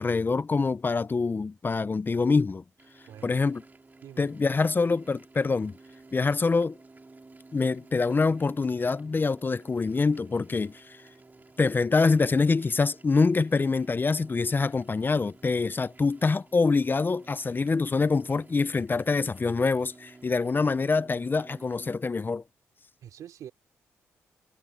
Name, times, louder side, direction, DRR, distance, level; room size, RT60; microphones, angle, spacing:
voice 1, 0.0-2.6 3.2-3.6 4.2-5.7 6.1-6.8 7.5-11.0 11.6-22.4, left 4 dB, 35° left, 0.7 m, -25 dB
sound 1, 2.8-22.0, right 3 dB, 30° right, 4.5 m, -53 dB
voice 2, 3.1-3.4 4.0-4.3 23.0-23.5, right 10 dB, 75° right, 3.5 m, -45 dB
supercardioid pair, 50°, 6 cm